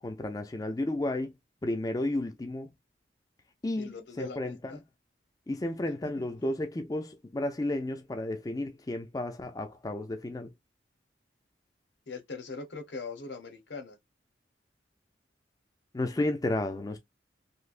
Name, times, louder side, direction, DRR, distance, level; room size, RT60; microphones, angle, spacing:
voice 1, 0.0-1.3 1.6-2.7 3.6-4.7 5.5-10.5 15.9-17.0, left 1 dB, 20° left, 0.4 m, -32 dB
voice 2, 3.8-4.8 6.2-6.3 12.1-14.0, left 4 dB, 70° left, 0.9 m, -41 dB
3.2 x 2.7 x 2.4 m
head